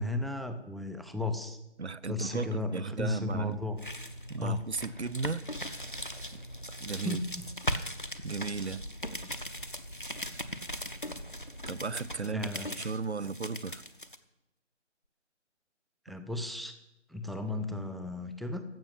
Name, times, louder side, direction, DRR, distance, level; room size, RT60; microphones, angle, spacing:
voice 1, 0.0-1.6 2.1-3.8 4.4-4.6 7.0-7.5 12.2-12.7 16.1-16.8 17.1-18.6, left 2 dB, ahead, 8 dB, 0.5 m, -34 dB
voice 2, 1.8-3.6 4.3-5.4 6.7-7.2 8.2-8.8 11.7-13.8, right 4 dB, 65° right, 20 dB, 0.6 m, -35 dB
sound 1, 3.3-14.2, equal, 45° left, 0.7 m, -39 dB
15.0 x 6.0 x 9.4 m, 0.90 s
figure-of-eight pair, 175°, 36 cm